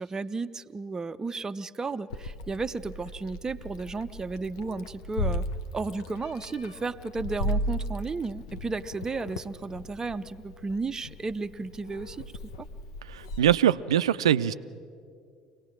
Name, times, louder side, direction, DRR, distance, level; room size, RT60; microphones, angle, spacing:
voice 1, 0.0-5.5 5.7-12.3 12.6-12.7, right 3 dB, 20° right, 10 dB, 0.5 m, -33 dB
Meow, 2.1-13.4, equal, 65° left, 0.8 m, -36 dB
voice 2, 13.1-14.5, right 10 dB, 70° right, 15 dB, 0.4 m, -23 dB
24.5 x 18.0 x 6.2 m, 2.3 s
figure-of-eight pair, 60°, 3 cm